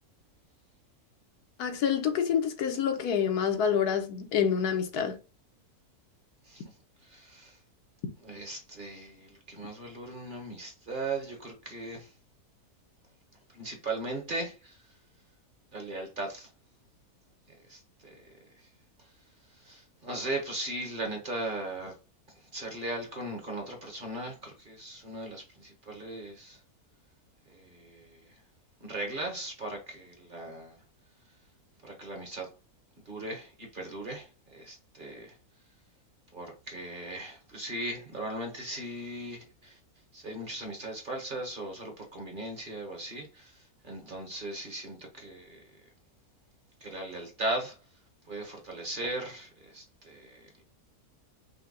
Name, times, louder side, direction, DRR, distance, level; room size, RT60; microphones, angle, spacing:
voice 1, 1.6-5.2, left 8 dB, 80° left, 1.3 m, -27 dB
voice 2, 7.1-7.6 8.2-12.1 13.5-14.8 15.7-16.5 17.7-18.3 19.6-21.9 22.5-26.6 27.5-28.2 28.8-30.8 31.8-32.5 33.1-35.3 36.3-39.8 40.1-43.6 43.8-45.6 46.8-47.8 48.3-50.4, right 2 dB, 35° right, 1.1 m, -38 dB
5.4 x 2.2 x 3.7 m
omnidirectional pair, 1.6 m